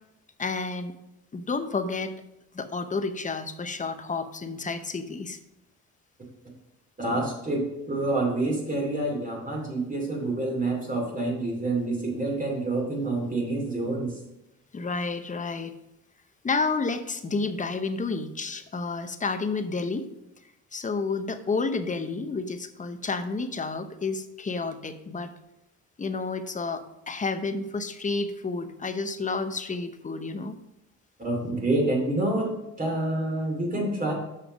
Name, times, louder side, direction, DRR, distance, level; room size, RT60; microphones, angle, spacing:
voice 1, 0.4-0.9 1.3-2.1 2.5-5.4 14.7-15.7 16.4-20.1 20.7-25.3 26.0-30.6, left 4 dB, 25° left, 9 dB, 0.8 m, -30 dB
voice 2, 7.0-14.2 31.2-34.1, right 2 dB, 25° right, -1 dB, 2.5 m, -27 dB
6.9 x 5.7 x 5.1 m, 0.87 s
cardioid pair, 90°, 30 cm